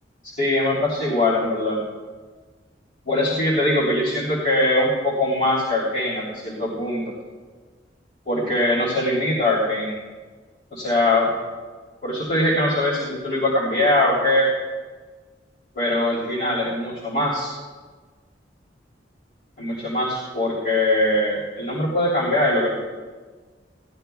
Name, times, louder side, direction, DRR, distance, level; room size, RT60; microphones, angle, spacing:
voice 1, 0.2-1.8 3.0-7.0 8.2-9.9 10.7-11.3 12.0-14.5 15.7-17.5 19.6-22.7, left 1 dB, 55° left, -9 dB, 3.1 m, -22 dB
19.0 x 12.0 x 2.3 m, 1.4 s
head